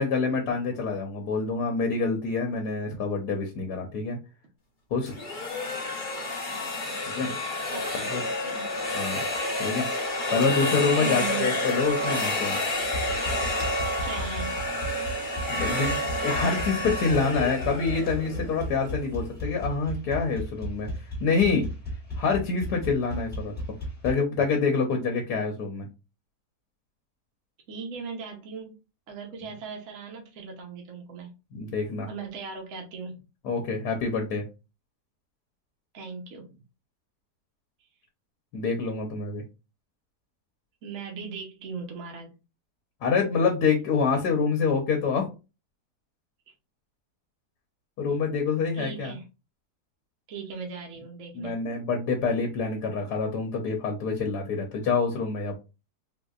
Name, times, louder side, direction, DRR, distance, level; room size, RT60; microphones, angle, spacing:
voice 1, 0.0-4.2 4.9-5.1 7.1-7.3 8.1-8.2 8.9-9.2 9.6-9.9 10.3-12.6 15.5-20.9 21.2-21.7 22.2-23.5 24.0-25.9 31.5-32.1 33.4-34.4 38.5-39.4 43.0-45.3 48.0-49.2 51.3-55.5, left 4 dB, 80° left, 2 dB, 1.3 m, -26 dB
sound 1, 5.1-18.9, left 1 dB, 35° left, 0.9 m, -29 dB
voice 2, 6.4-8.8 10.9-11.5 14.0-14.6 27.7-28.8 29.1-31.3 32.1-33.2 35.9-36.6 40.8-42.4 48.1-48.2 48.7-49.3 50.3-51.6, right 5 dB, 60° right, 1 dB, 1.1 m, -39 dB
sound 2, 12.1-12.5 12.8-24.1, equal, 5° left, 1.2 m, -35 dB
3.8 x 2.7 x 2.4 m, 0.29 s
omnidirectional pair, 1.7 m